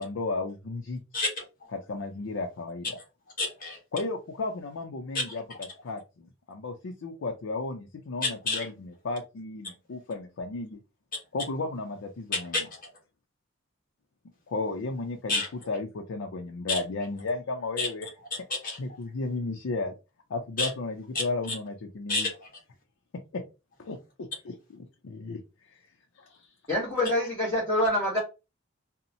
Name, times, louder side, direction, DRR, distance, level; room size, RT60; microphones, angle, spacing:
voice 1, 0.0-1.0 1.7-3.0 3.9-10.8 11.3-12.7 14.5-15.4 15.7-18.1 18.8-19.9 20.3-22.3 23.1-23.4 23.8-25.7 26.2-26.4, left 3 dB, 75° left, 3 dB, 0.5 m, -34 dB
voice 2, 1.1-1.7 3.4-3.8 5.1-5.4 8.2-8.7 11.1-11.2 12.3-12.9 15.3-15.5 16.7-16.8 17.8-17.9 18.3-18.8 20.6-20.7 21.1-21.2 22.1-22.5, left 3 dB, 45° left, -1 dB, 1.1 m, -30 dB
voice 3, 26.7-28.2, left 1 dB, 15° left, -7 dB, 1.0 m, -26 dB
2.7 x 2.0 x 2.6 m, 0.28 s
head